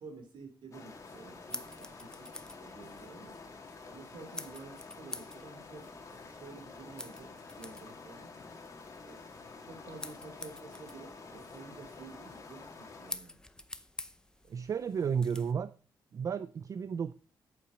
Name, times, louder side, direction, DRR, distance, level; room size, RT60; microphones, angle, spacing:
voice 1, 0.0-2.3 2.6-3.4 3.9-7.3 7.5-8.3 8.9-9.2 9.6-13.3, right 4 dB, 75° right, 3.1 m, -51 dB
sound 1, 0.7-13.1, left 4 dB, 40° left, 2.0 m, -49 dB
sound 2, 0.9-15.5, left 1 dB, 10° left, 0.6 m, -49 dB
voice 2, 14.5-15.7 16.1-17.1, right 6 dB, 40° right, 0.4 m, -32 dB
8.5 x 7.1 x 5.1 m
wide cardioid pair, 145°, 8 cm